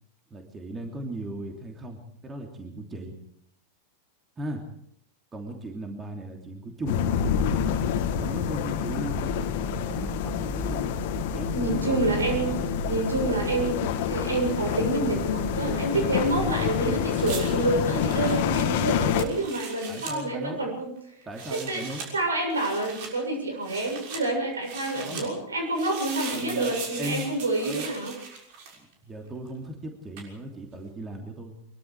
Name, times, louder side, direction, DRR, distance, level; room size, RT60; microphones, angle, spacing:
voice 1, 0.3-3.1 4.4-4.6 5.3-7.0 8.2-10.9 11.3-12.6 19.9-20.6 21.3-22.0 24.9-25.3 26.3-27.3 27.6-27.9 29.0-31.5, right 1 dB, 20° right, 3 dB, 3.1 m, -37 dB
sound 1, 6.8-19.2, left 8 dB, 50° left, 2.1 m, -27 dB
voice 2, 11.5-12.5 12.9-20.9 21.5-21.9 22.1-28.2, right 2 dB, 75° right, 3 dB, 7.3 m, -28 dB
sound 2, 17.2-20.2 21.2-22.1 22.5-23.1 23.6-24.2 24.6-25.3 25.7-28.9 30.2-30.3, right 5 dB, 50° right, 6.3 m, -39 dB
24.5 x 23.0 x 4.9 m, 0.69 s
figure-of-eight pair, 90°, 0 cm